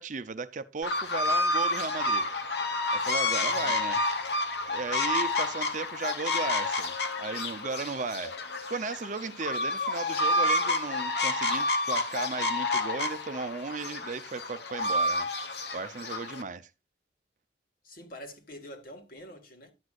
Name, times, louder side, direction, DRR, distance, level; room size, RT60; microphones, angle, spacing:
voice 1, 0.0-2.3 2.9-4.0 4.7-8.4 8.7-16.7, right 4 dB, 45° right, 0.6 m, -36 dB
sound 1, 0.8-16.4, left 2 dB, 70° left, 1.1 m, -29 dB
voice 2, 3.4-3.8 17.8-19.7, equal, 50° left, 1.9 m, -46 dB
12.0 x 7.9 x 2.5 m
head